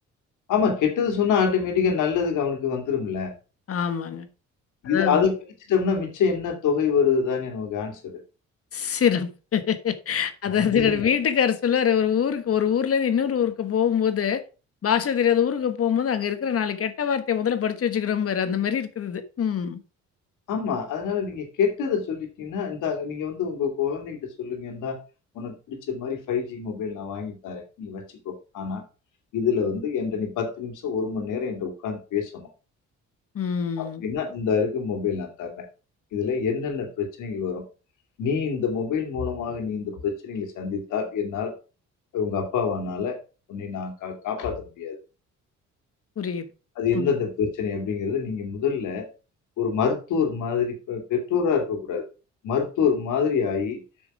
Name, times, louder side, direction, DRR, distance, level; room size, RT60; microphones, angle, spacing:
voice 1, 0.5-3.3 4.8-5.3 5.7-8.1 10.6-11.1 20.5-25.0 25.3-28.8 29.3-32.5 33.8-35.6 36.1-37.6 38.2-41.5 42.1-43.2 43.5-45.0 46.8-49.1 49.6-52.0 52.4-53.8, left 6 dB, 85° left, 2.6 m, -26 dB
voice 2, 3.7-4.3 4.8-5.2 8.7-14.4 14.8-19.8 33.3-34.0 46.2-46.4 46.9-47.1, left 8 dB, 50° left, 1.3 m, -24 dB
8.5 x 6.1 x 4.9 m
cardioid pair, 90°, 30 cm